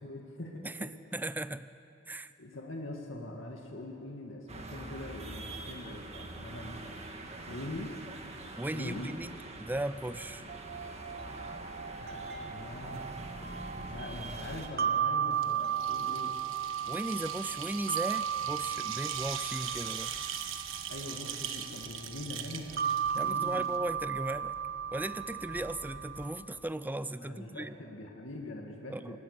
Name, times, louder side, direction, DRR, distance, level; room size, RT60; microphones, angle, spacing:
voice 1, 0.0-0.9 2.4-6.9 7.5-7.9 8.7-9.1 12.0-13.0 13.8-16.4 19.8-19.9 20.9-23.7 27.2-29.2, left 1 dB, 75° left, 0 dB, 2.2 m, -43 dB
voice 2, 0.6-1.7 2.1-2.3 8.5-9.3 9.6-10.4 16.9-20.2 23.2-24.6 24.9-27.8 28.9-29.2, right 1 dB, 10° right, 14 dB, 0.5 m, -37 dB
sound 1, 4.5-14.7, right 2 dB, 35° right, 1.8 m, -44 dB
sound 2, 10.5-26.3, right 8 dB, 55° right, 0.9 m, -35 dB
sound 3, 15.3-23.8, right 9 dB, 85° right, 1.3 m, -41 dB
24.0 x 19.0 x 6.8 m, 2.6 s
head